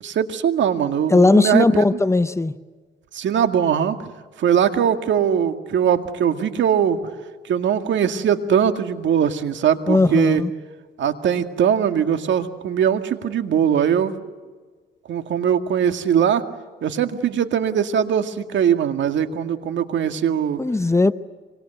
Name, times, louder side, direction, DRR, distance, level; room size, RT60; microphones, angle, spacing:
voice 1, 0.0-2.0 3.1-4.0 4.4-7.0 7.4-10.4 11.0-14.2 15.1-16.5 16.8-20.6, right 8 dB, 70° right, 2.1 m, -21 dB
voice 2, 1.1-2.5 9.9-10.5 20.6-21.1, left 2 dB, 15° left, 0.8 m, -17 dB
26.0 x 24.5 x 8.1 m
cardioid pair, 90°, 20 cm